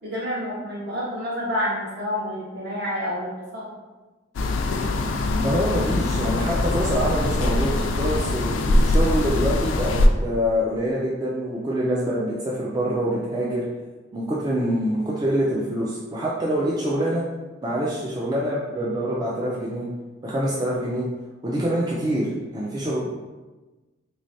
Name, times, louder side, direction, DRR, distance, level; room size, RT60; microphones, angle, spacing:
voice 1, 0.0-3.7, equal, 60° right, -8 dB, 1.4 m, -29 dB
sound 1, 4.3-10.1, left 2 dB, 75° left, 0.3 m, -22 dB
voice 2, 5.4-13.6 14.1-17.2 17.6-19.9 20.2-21.0 21.4-23.0, equal, 20° right, -5 dB, 0.4 m, -25 dB
3.4 x 3.2 x 2.6 m, 1.2 s
head